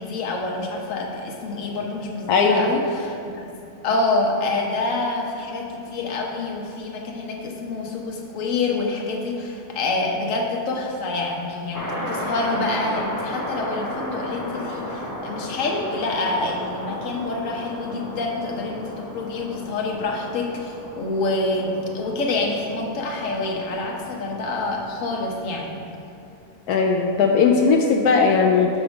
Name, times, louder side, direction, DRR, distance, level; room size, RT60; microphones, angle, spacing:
voice 1, 0.0-3.5 3.8-25.8, left 2 dB, 60° left, 0 dB, 1.3 m, -27 dB
voice 2, 2.3-2.7 26.7-28.7, left 5 dB, 85° left, 2 dB, 1.1 m, -18 dB
sound 1, 11.7-25.7, left 1 dB, 20° left, 0.6 m, -34 dB
6.9 x 5.0 x 5.2 m, 2.8 s
omnidirectional pair, 1.6 m